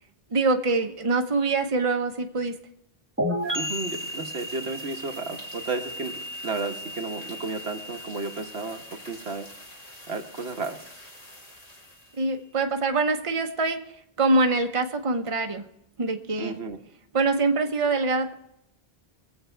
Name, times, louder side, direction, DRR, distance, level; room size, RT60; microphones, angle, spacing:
voice 1, 0.3-2.5 12.2-13.8 14.2-15.7 16.0-16.6 17.1-18.3, right 3 dB, 35° right, 5 dB, 1.0 m, -24 dB
sound 1, 3.2-10.7, equal, 10° right, 1.7 m, -35 dB
sound 2, 3.4-12.4, left 1 dB, 40° left, 2.8 m, -48 dB
voice 2, 3.5-9.5 10.1-10.9 16.4-16.8, right 3 dB, 90° right, 4 dB, 1.5 m, -33 dB
22.5 x 8.0 x 4.5 m, 0.78 s
omnidirectional pair, 1.0 m